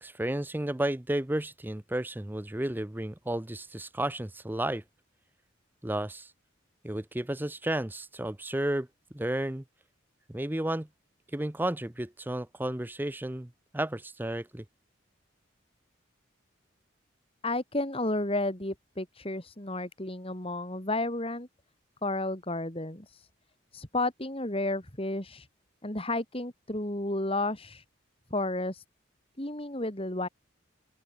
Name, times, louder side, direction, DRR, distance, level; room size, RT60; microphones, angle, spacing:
voice 1, 0.0-4.8 5.8-6.3 6.8-8.9 9.1-9.6 10.3-10.9 11.3-14.6, right 1 dB, 10° right, 0.6 m, -32 dB
voice 2, 17.4-21.5 22.0-23.3 23.7-25.5 25.8-27.8 28.3-28.8 29.4-30.3, left 2 dB, 30° left, 3.2 m, -32 dB
open air
head